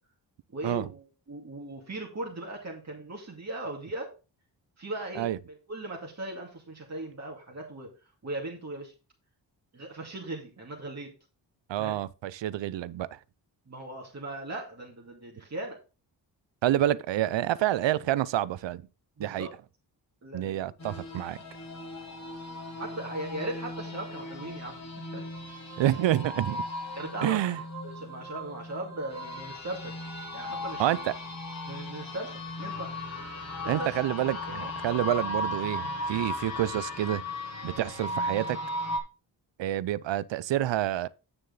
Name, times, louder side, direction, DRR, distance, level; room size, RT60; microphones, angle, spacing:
voice 1, 0.5-4.1 4.8-7.9 8.2-8.9 9.7-11.1 11.8-12.0 13.7-15.8 19.2-19.5 20.2-20.7 22.8-24.8 25.1-25.2 27.0-27.5 27.8-29.9 30.3-31.1 31.7-32.9 33.6-34.1 36.2-36.4, right 1 dB, 40° right, 2.3 m, -38 dB
voice 2, 11.7-13.2 16.6-18.8 19.2-19.5 20.3-21.4 25.8-26.6 27.2-27.6 30.8-31.1 33.7-37.2 37.6-38.6 39.6-41.1, right 13 dB, 85° right, 0.6 m, -28 dB
sound 1, 20.8-39.0, left 1 dB, 40° left, 2.8 m, -37 dB
9.1 x 6.5 x 3.9 m
cardioid pair, 85°, 43 cm